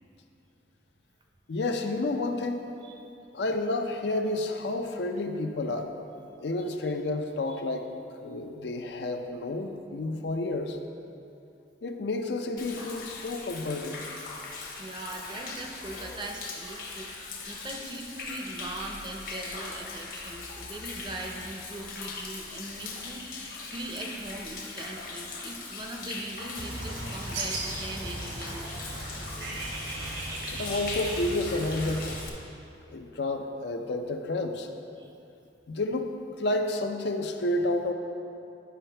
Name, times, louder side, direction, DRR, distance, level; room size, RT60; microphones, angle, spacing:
voice 1, 1.5-2.6 3.3-5.9 6.4-7.9 8.2-10.8 11.8-14.0 30.5-32.0 32.9-34.7 35.7-37.9, left 2 dB, 70° left, 5 dB, 0.5 m, -30 dB
Human voice / Rain / Stream, 12.6-32.3, left 3 dB, 50° left, 1.0 m, -40 dB
voice 2, 14.8-17.1 17.5-23.4 23.7-28.7 29.1-29.6 35.0-35.1, right 2 dB, 25° right, 2 dB, 0.5 m, -40 dB
Bird, 26.6-32.2, right 2 dB, 75° right, 1.1 m, -36 dB
10.0 x 5.5 x 3.3 m, 2.7 s
head